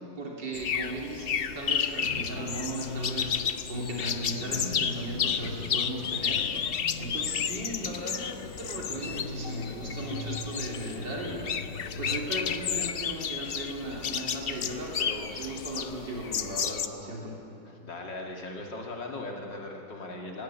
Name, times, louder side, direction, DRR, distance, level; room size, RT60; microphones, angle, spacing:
voice 1, 0.2-3.4 3.7-6.5 7.0-11.4 12.0-17.3, right 1 dB, 80° right, -2 dB, 3.9 m, -37 dB
sound 1, 0.5-16.9, left 7 dB, 70° left, 0.5 m, -32 dB
sound 2, 2.0-12.9, left 3 dB, 55° left, 1.2 m, -40 dB
voice 2, 17.7-20.4, left 2 dB, 85° left, 1 dB, 3.2 m, -38 dB
17.5 x 16.0 x 9.7 m, 2.7 s
omnidirectional pair, 1.9 m